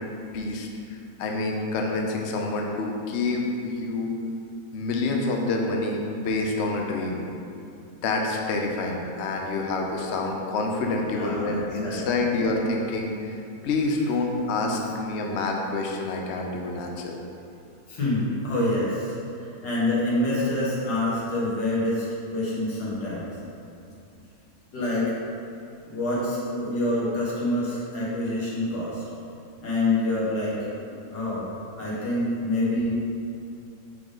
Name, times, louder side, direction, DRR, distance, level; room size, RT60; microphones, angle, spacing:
voice 1, 0.2-0.7 1.2-4.1 4.7-7.2 8.0-13.3 13.6-17.1, left 3 dB, 60° left, 1 dB, 0.7 m, -27 dB
voice 2, 11.1-12.0 17.9-23.3 24.7-25.1 25.9-29.0 29.6-30.6 31.1-31.5 31.8-33.0, left 1 dB, 85° left, -7 dB, 2.2 m, -26 dB
5.9 x 3.6 x 5.1 m, 2.6 s
omnidirectional pair, 1.9 m